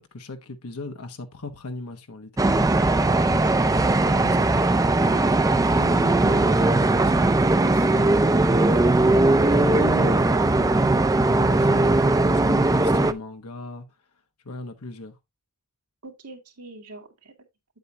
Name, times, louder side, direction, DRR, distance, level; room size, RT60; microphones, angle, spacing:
voice 1, 0.0-3.3 3.6-4.7 5.1-13.8 14.4-15.2, left 2 dB, 80° left, 1.1 m, -37 dB
sound 1, 2.4-13.1, right 2 dB, 15° right, 0.4 m, -19 dB
voice 2, 3.2-3.9 16.0-17.3, right 3 dB, 80° right, 2.3 m, -43 dB
8.5 x 7.7 x 2.8 m
head